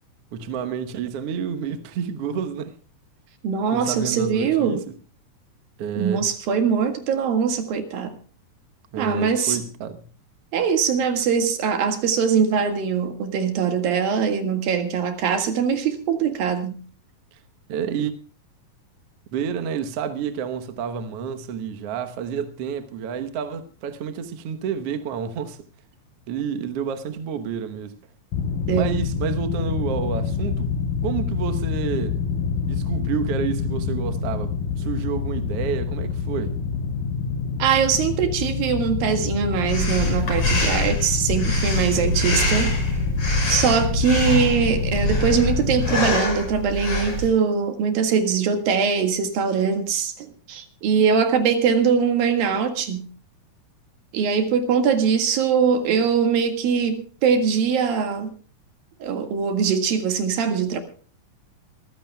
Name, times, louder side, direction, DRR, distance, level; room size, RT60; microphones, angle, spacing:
voice 1, 0.3-2.7 3.7-4.8 5.8-6.3 8.9-10.1 17.3-17.4 17.7-18.1 19.3-25.7 26.3-28.0 28.7-32.2 32.7-36.6, right 7 dB, 60° right, 1.6 m, -29 dB
voice 2, 3.4-4.8 6.0-8.1 9.0-9.6 10.5-16.8 28.7-29.0 37.6-42.7 43.5-53.1 54.1-58.3 59.0-60.8, right 6 dB, 85° right, 3.6 m, -22 dB
sound 1, 28.3-46.1, left 6 dB, 75° left, 2.7 m, -27 dB
Breathing, 39.7-47.3, left 1 dB, 50° left, 7.2 m, -25 dB
24.5 x 15.0 x 2.3 m
omnidirectional pair, 4.0 m